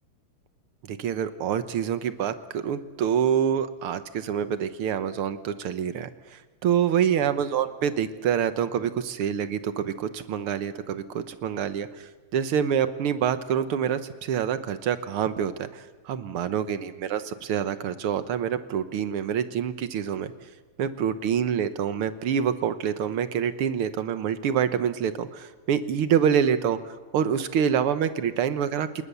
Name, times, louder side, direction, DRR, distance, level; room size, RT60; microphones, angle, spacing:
voice 1, 0.9-11.9 12.3-20.3 20.8-28.9, right 8 dB, 85° right, 11 dB, 2.0 m, -26 dB
28.0 x 20.0 x 7.0 m, 1.3 s
omnidirectional pair, 2.3 m